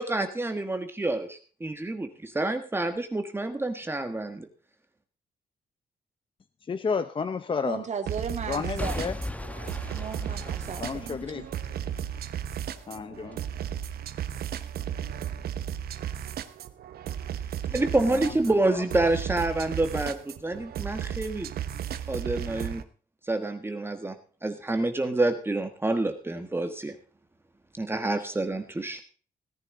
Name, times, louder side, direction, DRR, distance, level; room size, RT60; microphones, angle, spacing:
voice 1, 0.0-4.5 17.7-21.5 22.1-22.9 23.2-24.2 24.4-26.9 27.8-29.0, right 2 dB, 15° right, 6 dB, 1.4 m, -28 dB
voice 2, 6.7-7.9 8.5-9.1 10.8-11.4 12.9-13.4 17.7-17.8 18.1-18.3, left 5 dB, 35° left, 11 dB, 0.8 m, -31 dB
voice 3, 7.6-9.0 9.9-11.5, right 6 dB, 50° right, 6 dB, 2.2 m, -36 dB
sound 1, 8.1-22.8, right 9 dB, 85° right, 1.1 m, -35 dB
Boom / Shatter / Crushing, 8.8-12.8 13.3-13.4, left 1 dB, 10° left, 1.2 m, -38 dB
17.5 x 11.0 x 3.8 m, 0.40 s
cardioid pair, 125°, 16 cm